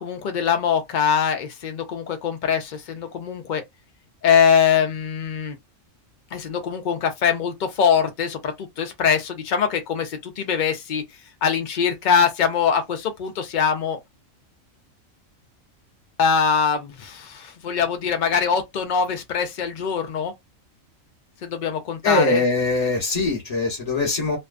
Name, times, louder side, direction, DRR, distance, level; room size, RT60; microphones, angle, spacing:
voice 1, 0.0-3.6 4.2-5.6 6.3-11.0 11.4-14.0 16.2-20.3 21.4-22.4, left 7 dB, 85° left, 0.4 m, -22 dB
voice 2, 22.0-24.4, left 3 dB, 30° left, 1.1 m, -22 dB
2.6 x 2.2 x 2.4 m
omnidirectional pair, 1.4 m